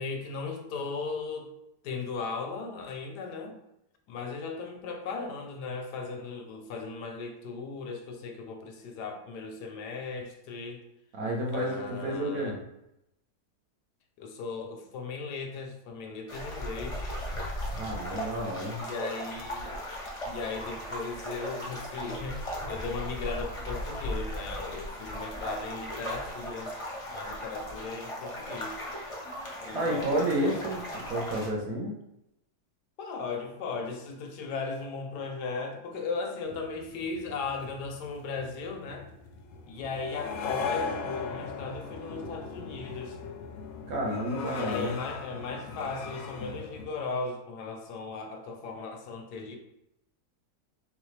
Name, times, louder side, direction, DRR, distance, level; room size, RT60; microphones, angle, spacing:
voice 1, 0.0-1.5 1.8-3.6 4.1-10.8 11.5-12.6 14.2-17.1 18.8-19.7 20.3-26.8 27.1-28.8 29.6-30.8 33.0-39.1 39.7-43.2 44.5-49.6, left 4 dB, 85° left, 3 dB, 1.3 m, -37 dB
voice 2, 11.1-12.6 17.8-18.8 29.7-31.9 43.9-45.0, right 1 dB, 60° right, -1 dB, 1.3 m, -30 dB
sound 1, 16.3-31.5, equal, 30° left, 0.7 m, -37 dB
sound 2, 36.5-46.9, left 5 dB, 65° left, 0.9 m, -39 dB
3.9 x 3.8 x 3.2 m, 0.84 s
omnidirectional pair, 1.7 m